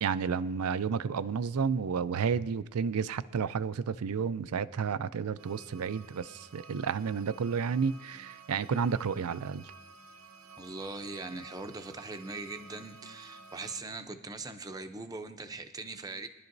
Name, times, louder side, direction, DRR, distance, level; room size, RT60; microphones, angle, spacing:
voice 1, 0.0-9.7, right 6 dB, 85° right, 15 dB, 0.4 m, -31 dB
sound 1, 5.4-13.8, right 4 dB, 70° right, 0.8 m, -53 dB
voice 2, 10.6-16.3, right 3 dB, 15° right, 8 dB, 0.6 m, -41 dB
22.0 x 11.5 x 2.6 m, 1.0 s
head